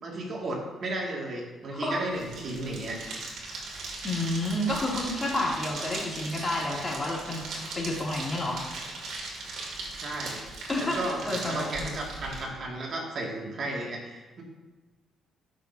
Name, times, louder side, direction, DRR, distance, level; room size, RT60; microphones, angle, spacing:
voice 1, 0.0-3.0 10.0-10.4 10.8-14.4, right 2 dB, 55° right, -2 dB, 2.1 m, -34 dB
sound 1, 2.1-12.4, right 3 dB, 70° right, 2.4 m, -39 dB
voice 2, 4.0-7.4 7.7-8.6 10.7-12.0, left 1 dB, 25° left, -4 dB, 2.6 m, -30 dB
12.5 x 6.3 x 2.7 m, 1.2 s
cardioid pair, 90°, 0 cm